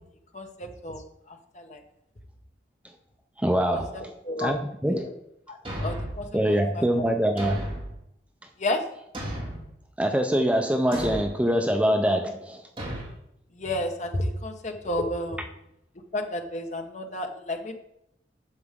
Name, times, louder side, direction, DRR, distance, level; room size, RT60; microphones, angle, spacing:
voice 1, 0.3-1.0 1.6-1.8 3.7-4.5 5.0-5.1 5.5-6.3 6.7-6.8 8.6-8.8 13.6-15.4 16.1-17.8, left 1 dB, 40° left, 1.0 m, -31 dB
voice 2, 3.4-4.1 4.4-5.1 6.3-7.6 10.0-12.6, equal, 5° right, 0.5 m, -24 dB
Thump thud, 5.6-6.3 7.4-8.0 9.1-9.7 10.9-11.3 12.8-13.1, equal, 30° right, 2.3 m, -33 dB
9.7 x 7.0 x 3.6 m
head